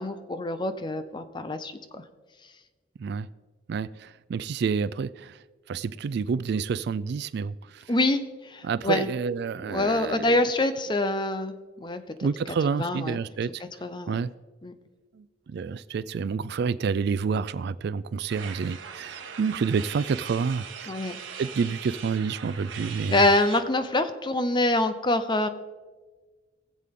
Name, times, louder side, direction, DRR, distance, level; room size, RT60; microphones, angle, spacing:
voice 1, 0.0-2.0 7.9-9.1 9.6-12.3 12.7-13.2 13.6-14.2 14.6-14.7 20.9-21.2 23.1-25.5, left 2 dB, 25° left, 10 dB, 0.7 m, -26 dB
voice 2, 3.7-5.3 5.7-7.5 8.6-10.4 12.2-13.6 14.1-14.3 15.5-20.9 21.4-23.3, right 5 dB, 60° right, 17 dB, 0.3 m, -28 dB
sound 1, 18.3-23.6, right 7 dB, 85° right, 1.2 m, -40 dB
20.0 x 7.5 x 3.7 m, 1.4 s
head